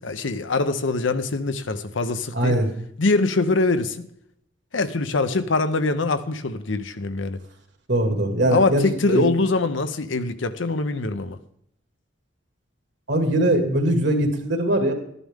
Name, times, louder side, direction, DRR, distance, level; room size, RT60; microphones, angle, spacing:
voice 1, 0.0-2.6 3.0-4.1 4.7-7.4 8.5-11.4, left 3 dB, 90° left, 10 dB, 0.8 m, -23 dB
voice 2, 2.3-2.7 7.9-9.3 13.1-14.9, right 1 dB, 65° right, 4 dB, 2.1 m, -21 dB
13.0 x 11.0 x 3.6 m, 0.71 s
head